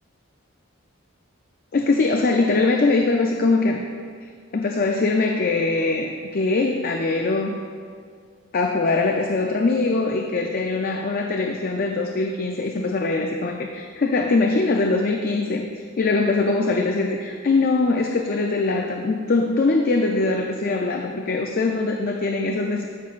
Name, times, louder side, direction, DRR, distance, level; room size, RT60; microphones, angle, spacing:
voice 1, 1.7-3.8 4.5-7.6 8.5-15.7 16.0-22.9, left 3 dB, 45° left, 3 dB, 0.4 m, -22 dB
13.5 x 6.3 x 2.4 m, 2.1 s
head